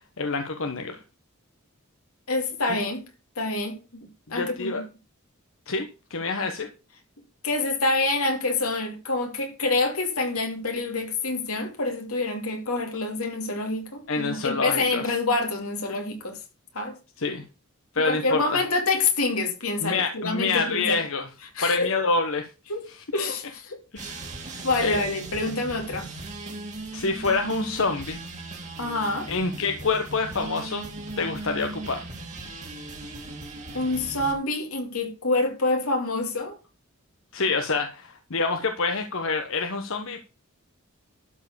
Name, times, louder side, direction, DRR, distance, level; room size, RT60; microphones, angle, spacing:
voice 1, 0.2-1.0 4.3-4.8 5.7-6.7 14.1-15.1 17.2-17.4 17.9-18.6 19.8-21.3 21.6-22.5 23.9-25.0 26.9-28.2 29.3-30.9 31.2-32.0 37.3-40.2, left 4 dB, 65° left, 1.2 m, -27 dB
voice 2, 2.3-3.0 3.4-4.8 7.4-16.4 16.7-17.0 18.0-21.0 21.6-21.9 22.7-22.8 23.1-23.8 24.6-26.1 28.8-29.3 33.7-36.6, left 3 dB, 85° left, 2.6 m, -27 dB
sound 1, 23.9-34.3, right 2 dB, 35° right, 2.7 m, -38 dB
12.5 x 4.7 x 6.8 m
head